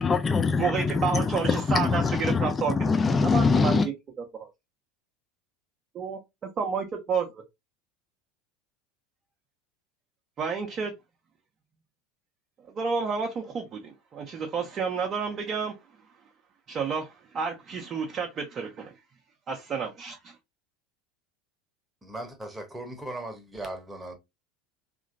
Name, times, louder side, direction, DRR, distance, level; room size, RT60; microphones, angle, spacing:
voice 1, 0.0-3.9, left 4 dB, 20° left, 0.3 m, -24 dB
voice 2, 0.6-2.7 3.3-3.8 4.4-4.5 5.9-6.2 6.6-7.4 10.4-10.9 12.7-15.7 16.7-18.9 19.5-20.3, right 5 dB, 35° right, 0.6 m, -30 dB
voice 3, 22.0-24.2, right 1 dB, 10° right, 0.9 m, -38 dB
2.8 x 2.5 x 2.5 m
figure-of-eight pair, 70°, 0 cm